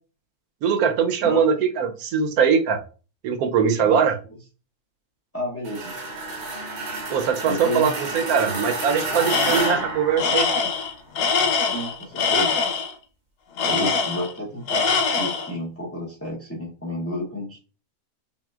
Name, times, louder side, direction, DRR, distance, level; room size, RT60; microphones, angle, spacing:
voice 1, 0.6-2.8 3.2-4.1 7.1-10.5 13.6-13.9, right 6 dB, 70° right, 6 dB, 1.1 m, -21 dB
voice 2, 3.8-4.1 5.3-5.9 7.4-7.9 8.4-8.7 9.5-9.7 11.6-12.6 13.6-17.6, left 1 dB, 15° left, -4 dB, 0.6 m, -31 dB
sound 1, 5.6-10.9, right 2 dB, 50° right, 0.5 m, -30 dB
Tools, 9.3-9.8 10.2-12.9 13.6-14.4 14.7-15.5, left 5 dB, 85° left, 1.3 m, -23 dB
5.4 x 2.5 x 2.3 m, 0.35 s
omnidirectional pair, 1.7 m